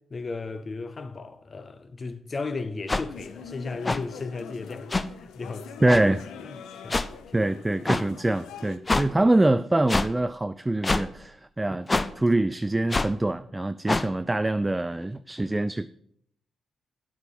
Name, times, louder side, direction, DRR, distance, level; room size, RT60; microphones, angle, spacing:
voice 1, 0.1-5.7 6.4-7.8 12.3-12.4, left 3 dB, 45° left, 1.0 m, -36 dB
sound 1, 2.9-3.0 3.8-4.0 4.9-5.1 5.9-6.0 6.9-7.1 7.8-8.0 8.9-9.1 9.9-10.1 10.8-11.0 11.9-12.1 12.9-13.1 13.9-14.1, left 2 dB, 30° left, 0.6 m, -24 dB
sound 2, 3.1-8.8, left 7 dB, 75° left, 0.7 m, -43 dB
voice 2, 5.8-6.3 7.3-11.9 12.2-15.9, right 2 dB, 20° right, 0.4 m, -24 dB
8.9 x 8.1 x 5.4 m
hypercardioid pair, 45°, 0 cm